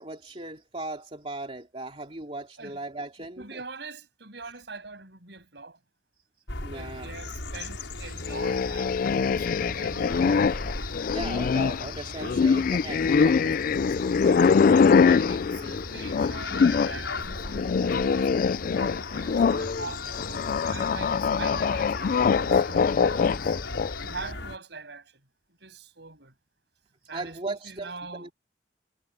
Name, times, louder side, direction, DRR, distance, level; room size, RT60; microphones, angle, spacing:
voice 1, 0.0-3.6 6.6-7.1 11.1-13.5 14.2-14.5 15.1-15.2 19.3-19.9 27.1-28.3, right 2 dB, 35° right, 2.7 m, -38 dB
voice 2, 3.4-5.8 6.7-10.6 12.1-12.6 13.0-14.4 15.1-18.5 19.1-23.6 24.0-25.2 25.6-26.3 27.1-28.3, right 4 dB, 65° right, 7.3 m, -43 dB
sound 1, 6.5-24.6, left 2 dB, 90° left, 6.4 m, -37 dB
sound 2, 8.2-17.0 17.3-24.1, left 5 dB, 50° left, 0.3 m, -23 dB
head